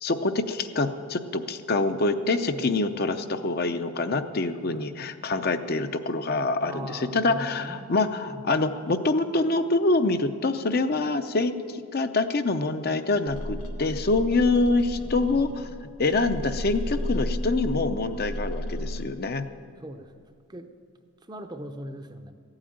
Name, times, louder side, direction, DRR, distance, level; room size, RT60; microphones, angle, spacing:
voice 1, 0.0-15.7 16.0-19.4, left 3 dB, 45° left, 8 dB, 0.6 m, -25 dB
voice 2, 6.7-7.9 8.3-8.5 19.8-20.1 20.5-20.7 21.3-22.3, right 1 dB, 20° right, 7 dB, 0.6 m, -39 dB
sound 1, 13.3-19.1, left 1 dB, 85° left, 1.4 m, -33 dB
15.0 x 8.8 x 8.8 m, 2.2 s
head